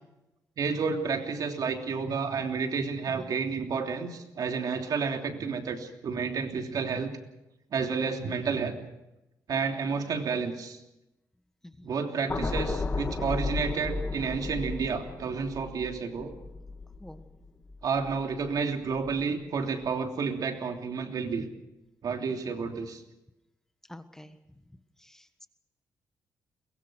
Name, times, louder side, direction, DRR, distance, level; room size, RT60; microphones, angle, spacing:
voice 1, 0.6-7.1 7.7-8.7 9.5-10.8 11.8-16.3 17.8-21.5 22.0-23.0, right 5 dB, 60° right, 4 dB, 3.1 m, -30 dB
sound 1, 12.3-18.6 19.0-19.2, left 3 dB, 30° left, 2.2 m, -34 dB
voice 2, 23.9-24.6 25.0-25.5, left 1 dB, 5° left, 9 dB, 1.5 m, -48 dB
23.0 x 21.5 x 6.3 m, 0.92 s
cardioid pair, 100°, 7 cm